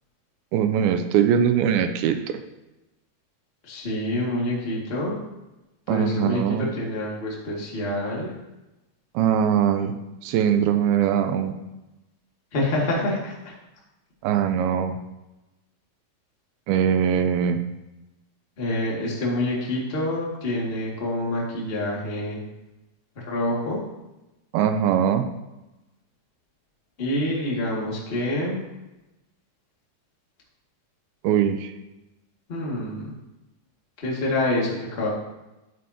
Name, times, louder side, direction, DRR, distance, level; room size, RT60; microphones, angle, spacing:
voice 1, 0.5-2.4 5.9-6.7 9.2-10.0 10.2-11.5 14.2-15.0 16.7-17.6 24.5-25.3 31.2-31.7, right 8 dB, 80° right, 7 dB, 2.3 m, -21 dB
voice 2, 3.6-5.2 5.9-8.3 12.5-13.5 18.6-22.4 23.1-23.8 27.0-28.6 32.5-33.1 34.0-35.1, left 1 dB, 25° left, -4 dB, 1.3 m, -27 dB
11.5 x 8.8 x 2.9 m, 0.99 s
omnidirectional pair, 4.7 m